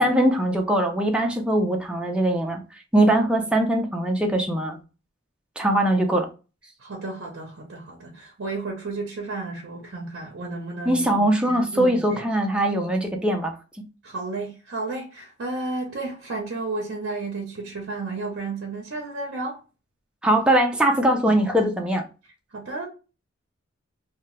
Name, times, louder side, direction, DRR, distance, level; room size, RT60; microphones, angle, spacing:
voice 1, 0.0-2.6 2.9-4.8 5.6-6.3 10.9-13.6 20.2-22.0, right 1 dB, 5° right, 0.4 m, -21 dB
voice 2, 6.8-12.2 14.0-19.6 22.5-22.9, right 3 dB, 55° right, 0.6 m, -32 dB
2.8 x 2.2 x 3.1 m
head